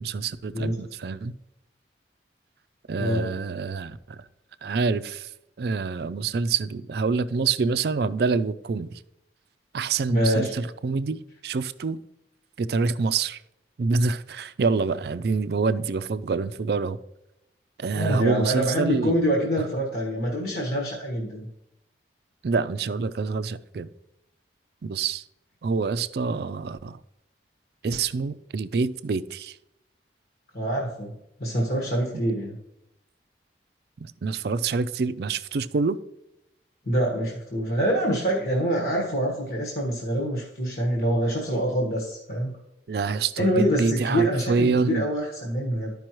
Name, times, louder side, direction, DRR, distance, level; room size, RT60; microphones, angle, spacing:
voice 1, 0.0-1.3 2.9-4.2 4.6-5.3 5.6-9.0 9.7-12.0 12.6-13.4 13.8-17.0 17.8-19.2 22.4-23.9 24.8-25.2 25.6-27.0 27.8-29.5 34.0-36.0 42.9-45.0, right 4 dB, 60° right, 0.4 m, -26 dB
voice 2, 3.0-3.3 10.1-10.5 17.9-21.5 30.5-31.1 31.4-32.6 36.9-42.6 43.4-45.9, equal, 55° left, 1.4 m, -25 dB
13.0 x 5.3 x 3.0 m
head